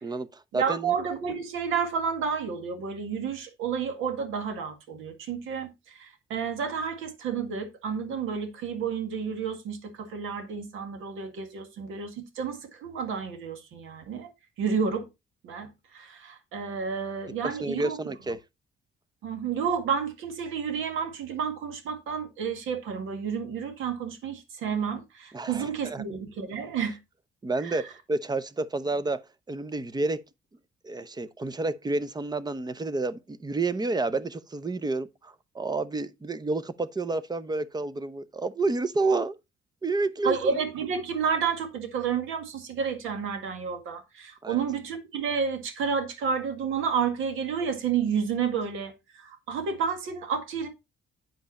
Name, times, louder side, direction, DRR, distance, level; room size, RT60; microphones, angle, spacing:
voice 1, 0.0-1.0 17.4-18.4 25.3-26.0 27.4-29.2 29.5-30.2 30.8-39.3 39.8-40.6 44.4-44.6, right 3 dB, 20° right, 0.8 m, -30 dB
voice 2, 0.5-14.3 14.6-15.1 15.4-18.0 19.2-27.0 27.6-27.8 40.2-50.7, right 6 dB, 85° right, 1.9 m, -30 dB
9.2 x 5.3 x 4.2 m
cardioid pair, 90°, 20 cm